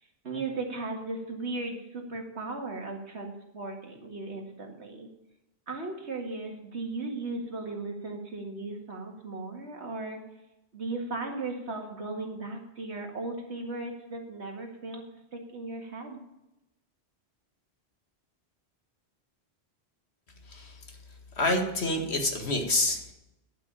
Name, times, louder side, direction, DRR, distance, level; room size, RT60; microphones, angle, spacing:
voice 1, 0.2-5.1 5.7-10.2 10.7-15.0 15.3-16.2, right 3 dB, 85° right, 2 dB, 2.3 m, -36 dB
voice 2, 20.5-20.8 21.4-23.1, left 2 dB, 75° left, 3 dB, 2.1 m, -27 dB
11.5 x 6.0 x 8.8 m, 0.91 s
omnidirectional pair, 1.1 m